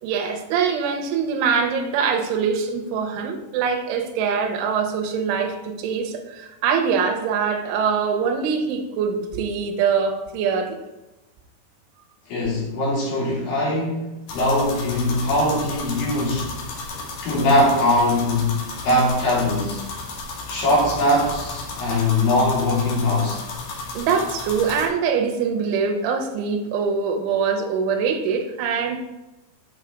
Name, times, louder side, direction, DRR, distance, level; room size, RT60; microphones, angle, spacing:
voice 1, 0.0-10.8 23.9-29.0, right 6 dB, 80° right, 3 dB, 3.2 m, -23 dB
voice 2, 12.3-16.5 17.2-19.9 20.5-23.4, left 1 dB, 50° left, -5 dB, 3.8 m, -21 dB
sound 1, 14.3-24.9, left 3 dB, 70° left, 3.5 m, -34 dB
8.6 x 5.7 x 3.7 m, 1.0 s
omnidirectional pair, 5.8 m